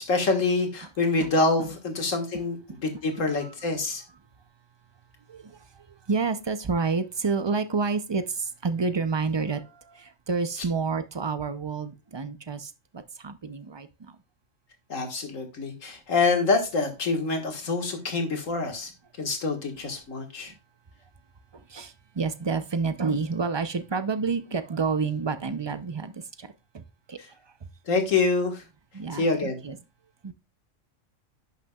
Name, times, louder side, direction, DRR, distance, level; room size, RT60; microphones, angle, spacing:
voice 1, 0.0-2.6 2.8-4.0 14.9-18.9 19.2-20.5 27.9-28.6 29.1-29.6, left 3 dB, 80° left, 2.1 m, -26 dB
voice 2, 3.2-3.5 5.3-5.6 6.1-9.6 10.0-12.7 13.2-13.9 21.7-26.5 26.7-26.8 27.1-27.2 28.9-29.8 30.2-30.3, right 4 dB, 35° right, 0.4 m, -29 dB
11.0 x 6.4 x 2.3 m
omnidirectional pair, 1.3 m